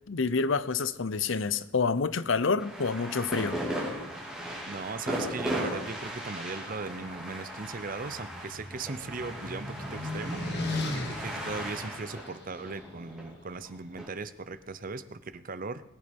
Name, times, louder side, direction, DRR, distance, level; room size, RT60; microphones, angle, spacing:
voice 1, 0.1-3.6, left 4 dB, 75° left, 16 dB, 0.7 m, -28 dB
sound 1, 2.6-14.1, equal, 5° right, 3.7 m, -37 dB
voice 2, 4.7-10.4 10.9-15.8, right 4 dB, 45° right, 14 dB, 0.7 m, -38 dB
sound 2, 7.7-12.7, left 2 dB, 55° left, 2.6 m, -37 dB
20.5 x 8.6 x 5.3 m, 0.78 s
head